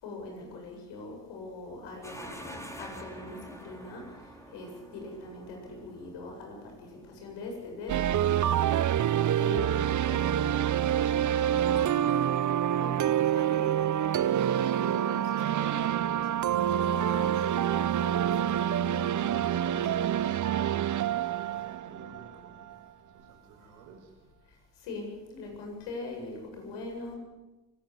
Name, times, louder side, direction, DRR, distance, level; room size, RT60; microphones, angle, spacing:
voice 1, 0.0-8.7 9.4-10.9 11.7-12.4 12.8-20.4 24.8-27.2, left 2 dB, 75° left, 2 dB, 8.0 m, -43 dB
sound 1, 2.0-12.8, equal, 5° left, 4.6 m, -50 dB
sound 2, 7.9-22.7, right 10 dB, 45° right, 0.8 m, -27 dB
voice 2, 21.1-22.8 23.1-24.1, right 4 dB, 85° right, 2 dB, 5.5 m, -53 dB
24.5 x 17.5 x 8.0 m, 1.2 s
hypercardioid pair, 60°, 42 cm